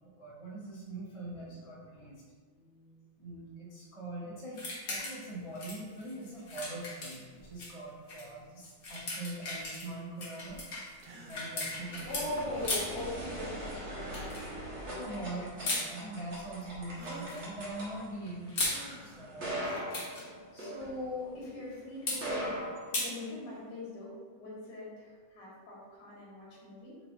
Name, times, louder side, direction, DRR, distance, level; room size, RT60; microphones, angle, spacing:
voice 1, 0.0-2.2 3.2-10.7 11.3-12.1 15.0-20.2 22.1-22.2, right 2 dB, 20° left, -8 dB, 0.9 m, -43 dB
voice 2, 1.4-1.9 2.5-3.0 12.1-15.6 20.5-27.0, left 2 dB, 75° left, -5 dB, 2.9 m, -42 dB
sound 1, 4.5-5.3 5.5-7.7 8.1-8.2 8.6-12.3 12.6-13.0 14.1-14.4 15.6-15.8 17.0-17.4 18.3-18.8 19.7-20.2 22.1-22.2 22.9-23.1, left 2 dB, 45° left, 1.2 m, -36 dB
sound 2, 11.0-11.4 12.5-12.8 14.0-14.5 15.6-16.1 16.9-17.4 18.6-19.3, right 2 dB, 65° right, 1.6 m, -50 dB
sound 3, 11.1-21.5 22.0-23.6, right 1 dB, 45° right, 0.9 m, -41 dB
6.1 x 4.0 x 4.0 m, 1.5 s
omnidirectional pair, 3.6 m